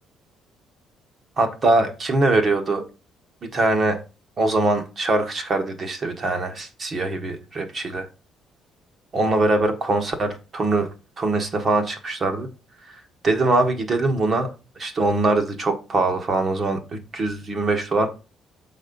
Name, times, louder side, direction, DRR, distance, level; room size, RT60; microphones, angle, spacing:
voice 1, 1.4-2.8 3.5-4.0 4.4-8.1 9.1-10.9 11.2-12.5 13.2-14.5 14.8-18.1, right 2 dB, 30° right, 5 dB, 1.2 m, -22 dB
7.3 x 4.2 x 5.2 m, 0.31 s
cardioid pair, 150°, 0 cm